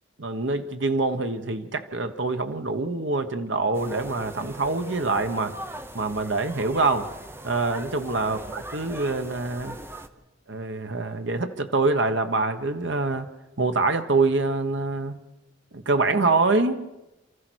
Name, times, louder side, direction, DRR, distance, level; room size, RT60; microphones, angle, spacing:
voice 1, 0.2-5.5 5.9-7.1 7.4-9.8 10.5-13.3 13.6-15.2 15.7-16.8, right 3 dB, 65° right, 7 dB, 1.2 m, -25 dB
sound 1, 3.7-10.1, right 1 dB, 10° right, 0.9 m, -40 dB
28.5 x 14.5 x 6.4 m, 1.0 s
head